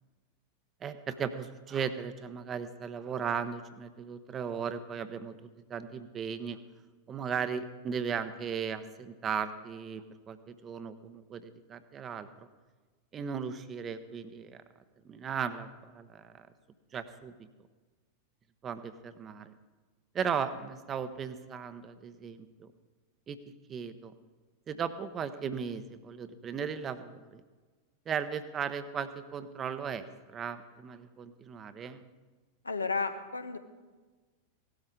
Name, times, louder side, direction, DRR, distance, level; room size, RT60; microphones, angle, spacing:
voice 1, 0.8-5.3 5.7-6.6 7.1-12.5 13.1-14.6 15.1-16.5 16.9-17.5 18.6-19.5 20.1-22.7 23.3-23.4 23.7-24.1 24.7-27.4 28.1-32.0, right 7 dB, 25° right, 12 dB, 0.8 m, -36 dB
voice 2, 32.6-33.6, left 4 dB, 80° left, 9 dB, 0.9 m, -32 dB
17.0 x 12.5 x 3.8 m, 1.3 s
figure-of-eight pair, 90°, 0 cm